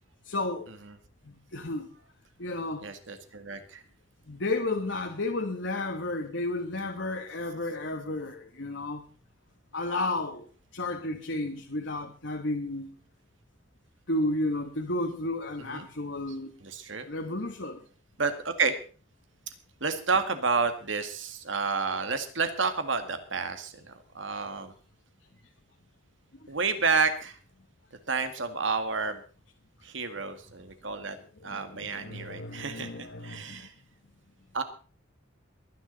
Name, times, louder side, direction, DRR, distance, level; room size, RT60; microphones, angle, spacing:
voice 1, 0.3-0.7 1.3-1.9 2.4-2.8 4.3-9.0 9.7-10.5 10.7-12.9 14.1-16.5 17.1-17.8 31.4-33.6, left 2 dB, 65° left, 1.5 m, -32 dB
voice 2, 2.8-3.8 15.7-15.9 16.6-17.0 18.2-18.8 19.8-24.7 26.5-27.4 28.1-29.2 29.8-31.2 31.4-33.7 34.5-34.6, right 4 dB, 70° right, 2.0 m, -30 dB
22.5 x 10.0 x 4.1 m
head